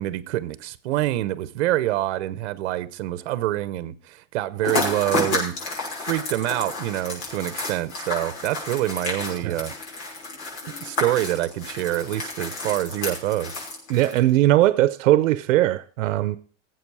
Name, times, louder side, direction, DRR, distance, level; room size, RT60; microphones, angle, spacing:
voice 1, 0.0-5.6 6.1-9.7 10.8-13.5, right 15 dB, 60° right, 1.0 m, -26 dB
sound 1, 4.6-14.4, left 3 dB, 60° left, 5.9 m, -31 dB
voice 2, 13.9-16.4, right 15 dB, 85° right, 0.7 m, -19 dB
18.0 x 7.9 x 4.8 m
supercardioid pair, 170°, 38 cm